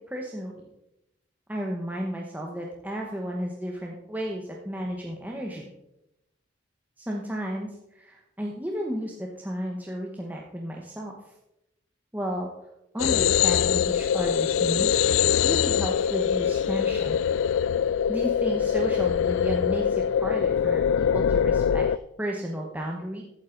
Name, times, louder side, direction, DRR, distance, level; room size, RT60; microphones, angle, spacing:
voice 1, 0.1-0.6 1.5-5.7 7.0-11.1 12.1-12.5 12.9-15.1 15.4-17.2 18.1-23.2, equal, 10° right, -1 dB, 1.1 m, -33 dB
sound 1, 13.0-22.0, left 8 dB, 85° left, 0.3 m, -23 dB
14.5 x 8.9 x 3.9 m, 0.87 s
head